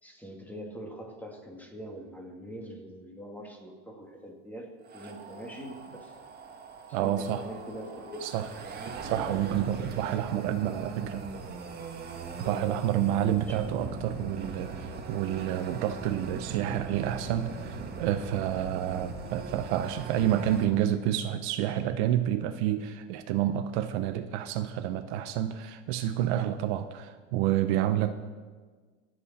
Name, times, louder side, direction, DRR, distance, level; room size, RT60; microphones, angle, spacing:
voice 1, 0.0-6.1 6.9-8.4 13.5-13.6, equal, 5° left, 1 dB, 2.0 m, -43 dB
sound 1, 4.8-20.7, right 4 dB, 25° right, 1.6 m, -40 dB
voice 2, 6.9-7.4 8.2-8.5 9.0-11.3 12.4-28.1, right 11 dB, 60° right, 9 dB, 0.8 m, -29 dB
24.0 x 8.2 x 4.2 m, 1.4 s
supercardioid pair, 140°, 39 cm